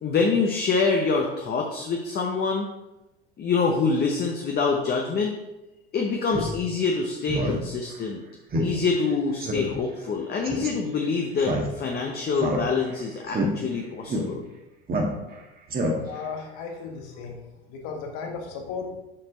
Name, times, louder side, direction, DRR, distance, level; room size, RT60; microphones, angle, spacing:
voice 1, 0.0-2.7 3.4-5.4 5.9-8.2 8.6-14.4, left 4 dB, 30° left, 1 dB, 0.9 m, -25 dB
Speech synthesizer, 6.3-6.5 6.9-7.0 7.3-7.6 7.9-8.0 8.5-8.7 9.0-9.1 9.4-9.7 10.4-10.7 11.4-12.0 12.3-12.9 13.3-13.5 14.1-14.2 14.9-15.4 15.7-16.2, right 1 dB, 30° right, 1.5 m, -27 dB
voice 2, 16.0-17.4 17.7-19.0, left 5 dB, 65° left, 3 dB, 1.6 m, -35 dB
7.5 x 4.3 x 3.9 m, 0.96 s
hypercardioid pair, 85°, 31 cm